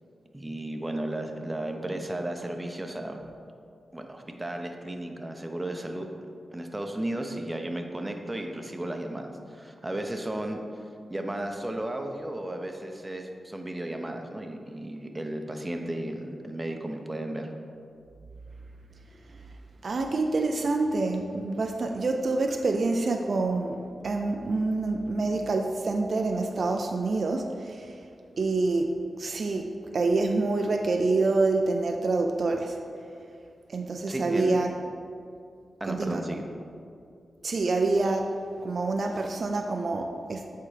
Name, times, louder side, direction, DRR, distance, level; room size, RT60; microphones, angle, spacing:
voice 1, 0.3-3.2 3.9-6.1 6.5-10.6 11.1-17.5 34.1-34.6 35.8-36.4, right 1 dB, 20° right, 4 dB, 0.7 m, -34 dB
voice 2, 19.8-23.8 24.0-28.0 28.4-32.8 33.7-34.7 35.8-36.2 37.4-38.3 38.6-40.5, right 3 dB, 60° right, 4 dB, 0.4 m, -27 dB
8.5 x 4.3 x 3.3 m, 2.4 s
cardioid pair, 60°, 0 cm